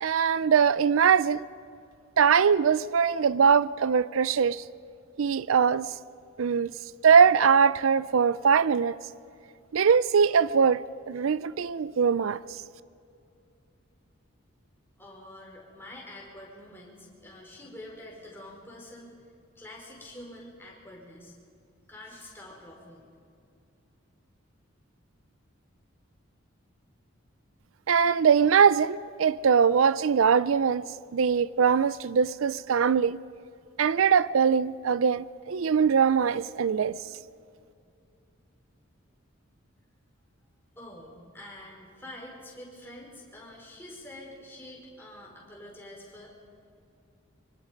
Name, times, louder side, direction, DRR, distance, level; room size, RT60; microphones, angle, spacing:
voice 1, 0.0-1.4 2.2-4.6 5.2-5.9 6.4-6.7 7.0-8.9 9.7-10.8 11.1-12.4 27.9-30.8 31.1-33.2 33.8-37.0, right 6 dB, 75° right, 0.4 m, -22 dB
voice 2, 15.0-19.1 19.5-21.3 21.9-23.1 40.7-46.3, left 1 dB, 10° left, 5.0 m, -46 dB
25.5 x 25.0 x 5.3 m
head